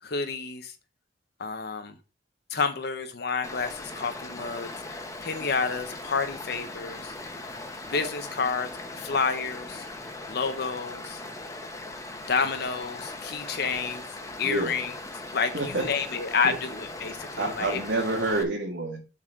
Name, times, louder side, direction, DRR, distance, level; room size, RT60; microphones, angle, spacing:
voice 1, 0.0-0.7 1.4-2.0 2.5-7.1 7.9-8.7 9.0-9.9 10.3-11.2 12.3-14.9 15.3-17.8, left 5 dB, 60° left, 8 dB, 0.9 m, -29 dB
Stream, 3.4-18.4, left 2 dB, 15° left, 1.1 m, -39 dB
voice 2, 14.4-14.7 15.5-15.8 16.4-16.6 17.1-19.0, right 2 dB, 75° right, -1 dB, 1.7 m, -28 dB
7.4 x 4.1 x 6.3 m, 0.31 s
head